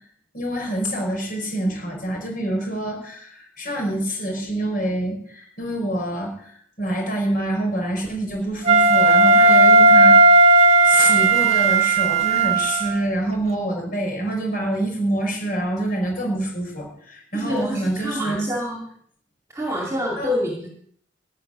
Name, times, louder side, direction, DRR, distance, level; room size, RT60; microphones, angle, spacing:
voice 1, 0.3-10.3 10.8-18.5 20.2-20.3, right 1 dB, 50° left, 1 dB, 5.3 m, -26 dB
Wind instrument woodwind instrument, 8.7-13.0, right 3 dB, 35° right, 1.3 m, -14 dB
voice 2, 17.3-18.9 19.5-20.7, left 1 dB, 15° right, -1 dB, 2.0 m, -27 dB
14.5 x 6.1 x 9.7 m, 0.63 s
head